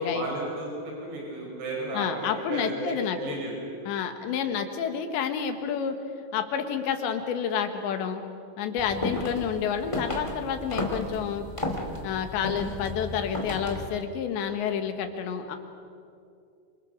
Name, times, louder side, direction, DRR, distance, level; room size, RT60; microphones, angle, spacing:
voice 1, 0.0-3.5 8.8-9.3, right 1 dB, 70° right, -2 dB, 7.2 m, -34 dB
voice 2, 2.0-3.2 3.9-6.0 6.3-8.2 8.6-11.5 12.0-15.6, left 7 dB, 80° left, 6 dB, 3.9 m, -29 dB
sound 1, 8.8-14.0, left 2 dB, 15° left, 1.3 m, -34 dB
28.0 x 25.5 x 6.8 m, 2.4 s
omnidirectional pair, 5.1 m